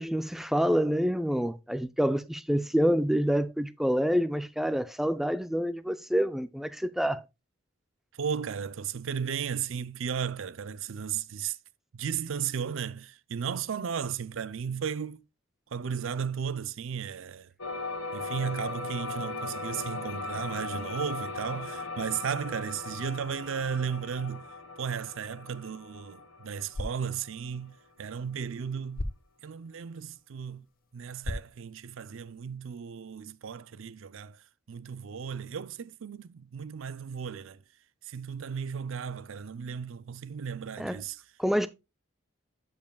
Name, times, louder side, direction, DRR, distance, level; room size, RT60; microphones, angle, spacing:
voice 1, 0.0-7.2 40.8-41.0 41.4-41.7, equal, ahead, 0.3 m, -27 dB
voice 2, 8.1-11.6 11.9-15.2 15.7-17.5 18.1-24.5 24.8-29.1 29.4-30.6 30.9-34.4 34.7-37.6 38.0-41.2, right 7 dB, 70° right, 0.5 m, -35 dB
sound 1, 17.6-27.5, left 3 dB, 70° left, 1.5 m, -38 dB
sound 2, 26.6-32.6, left 1 dB, 45° left, 0.7 m, -42 dB
12.0 x 5.4 x 2.2 m
head